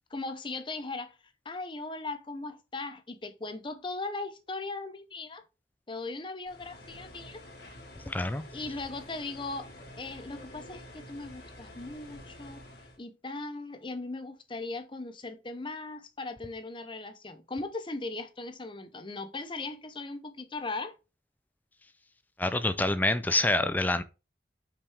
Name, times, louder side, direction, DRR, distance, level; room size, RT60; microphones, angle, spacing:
voice 1, 0.1-1.1 1.4-5.4 5.9-7.4 8.5-9.7 10.0-12.6 13.0-20.9, left 3 dB, 25° left, 0.7 m, -38 dB
sound 1, 6.5-13.0, left 1 dB, 60° left, 1.7 m, -48 dB
voice 2, 8.1-8.4 22.4-24.0, left 2 dB, 10° left, 0.4 m, -26 dB
5.5 x 5.1 x 3.4 m
head